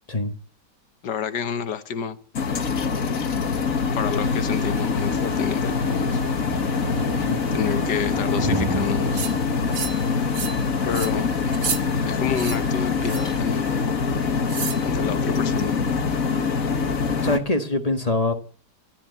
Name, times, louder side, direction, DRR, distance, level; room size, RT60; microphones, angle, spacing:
voice 1, 1.0-2.2 3.9-6.2 7.5-9.3 10.9-11.3 12.1-13.7 14.8-15.8, left 7 dB, 75° left, 1.8 m, -29 dB
sound 1, 2.3-17.4, left 5 dB, 50° left, 1.7 m, -24 dB
sound 2, 4.2-13.8, right 1 dB, 15° right, 1.6 m, -34 dB
sound 3, 9.1-9.3 9.7-10.0 10.3-10.6 10.9-11.1 11.5-11.8 12.3-12.6 13.0-13.3 14.5-14.8, right 7 dB, 75° right, 2.1 m, -30 dB
voice 2, 17.2-18.3, left 2 dB, 20° left, 1.6 m, -23 dB
13.5 x 12.5 x 8.2 m
omnidirectional pair, 1.9 m